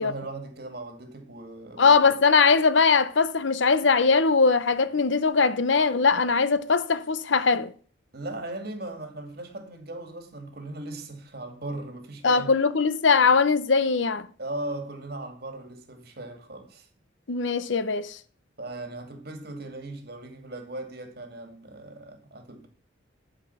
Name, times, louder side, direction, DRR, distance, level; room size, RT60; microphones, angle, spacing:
voice 1, 0.0-2.1 8.1-12.5 14.4-16.9 18.6-22.7, right 2 dB, 50° right, 2.2 m, -38 dB
voice 2, 1.8-7.7 12.2-14.2 17.3-18.2, left 4 dB, 70° left, 0.7 m, -21 dB
11.5 x 5.2 x 7.1 m
head